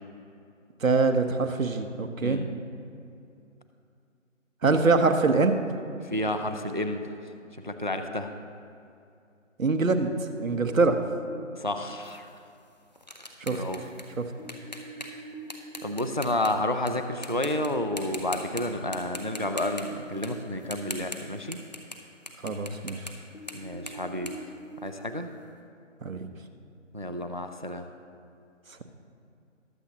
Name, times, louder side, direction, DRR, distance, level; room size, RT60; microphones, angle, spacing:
voice 1, 0.8-2.4 4.6-5.6 9.6-11.0 13.4-13.6 14.2-14.3 22.4-23.1 26.0-26.3, right 3 dB, 90° right, 7 dB, 1.2 m, -24 dB
voice 2, 6.0-7.1 7.6-8.3 11.6-12.3 13.4-13.8 15.8-21.6 23.5-24.4 24.8-25.3 26.9-27.9, left 1 dB, 40° right, 7 dB, 0.4 m, -30 dB
sound 1, 9.9-11.3 14.4-15.8 18.9-20.3 23.3-24.7, right 2 dB, 85° left, 2.0 m, -44 dB
sound 2, 12.0-16.9 17.2-17.7 18.0-18.6 18.9-22.0 22.3-25.3, left 1 dB, 35° left, 0.7 m, -41 dB
21.0 x 7.3 x 2.9 m, 2.5 s
figure-of-eight pair, 175°, 39 cm